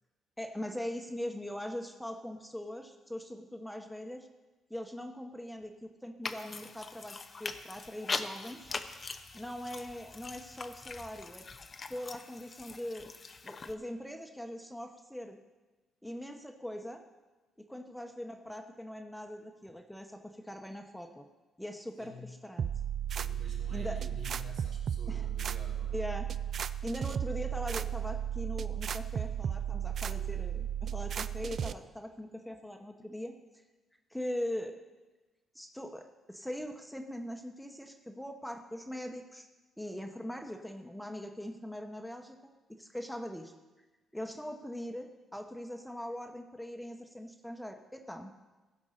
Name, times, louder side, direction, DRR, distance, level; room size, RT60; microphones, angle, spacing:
voice 1, 0.4-4.3 4.7-8.7 9.3-11.4 11.9-13.1 13.4-15.4 16.0-17.0 17.6-21.3 21.6-22.7 23.7-24.0 25.1-25.3 25.9-26.3 26.8-33.3 34.1-34.7 35.5-39.5 39.8-42.4 42.8-43.5 44.1-48.3, left 1 dB, 5° left, 5 dB, 0.9 m, -41 dB
sound 1, 6.2-13.7, left 4 dB, 35° left, 0.7 m, -42 dB
voice 2, 22.0-22.3 23.1-26.0, left 1 dB, 80° right, -4 dB, 3.7 m, -49 dB
sound 2, 22.6-31.7, right 9 dB, 55° right, 0.4 m, -34 dB
15.0 x 5.3 x 6.6 m, 1.2 s
cardioid pair, 90°, 0 cm